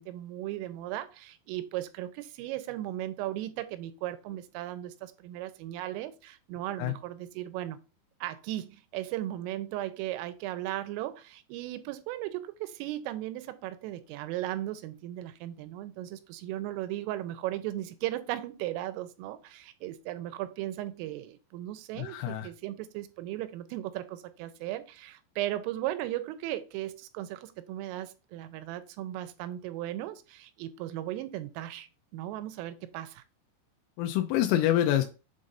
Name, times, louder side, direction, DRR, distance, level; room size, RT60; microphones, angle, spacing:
voice 1, 0.0-7.8 8.2-33.2, right 14 dB, 85° right, 3.2 m, -36 dB
voice 2, 22.0-22.5 34.0-35.0, left 12 dB, 90° left, 3.2 m, -26 dB
7.6 x 2.6 x 5.4 m
omnidirectional pair, 5.8 m